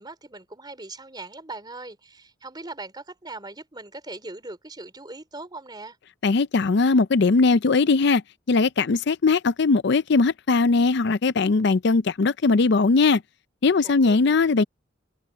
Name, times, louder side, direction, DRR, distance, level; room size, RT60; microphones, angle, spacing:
voice 1, 0.0-6.0 13.8-14.3, right 2 dB, 20° right, 3.6 m, -40 dB
voice 2, 6.2-8.2 8.5-13.2 13.6-14.6, left 4 dB, 55° left, 0.5 m, -20 dB
head